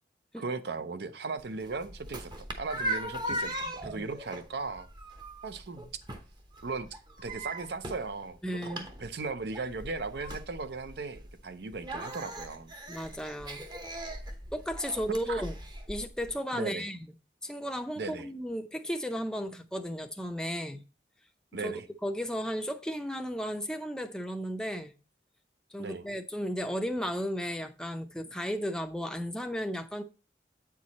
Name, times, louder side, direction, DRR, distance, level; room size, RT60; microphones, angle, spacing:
voice 1, 0.4-2.3 2.6-4.9 5.4-6.0 6.6-12.7 15.3-15.4 16.5-16.9 18.0-18.3 21.5-21.9 25.8-26.1, right 4 dB, 65° right, 0.6 m, -37 dB
sound 1, 1.4-16.3, right 1 dB, 25° right, 0.8 m, -39 dB
voice 2, 8.4-8.8 12.9-13.7 14.5-15.6 15.9-17.1 17.4-20.8 21.6-24.9 25.7-30.0, equal, 5° left, 0.5 m, -34 dB
8.3 x 4.7 x 4.1 m
head